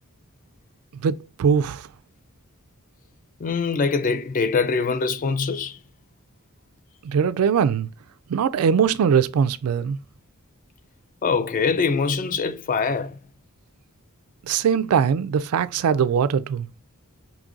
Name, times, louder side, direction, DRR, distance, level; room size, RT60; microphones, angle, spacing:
voice 1, 1.0-1.9 7.0-7.9 8.3-10.0 14.4-16.7, right 7 dB, 75° right, 0.3 m, -21 dB
voice 2, 3.4-5.8 11.2-13.2, left 5 dB, 40° left, 0.4 m, -23 dB
5.2 x 3.0 x 2.4 m
head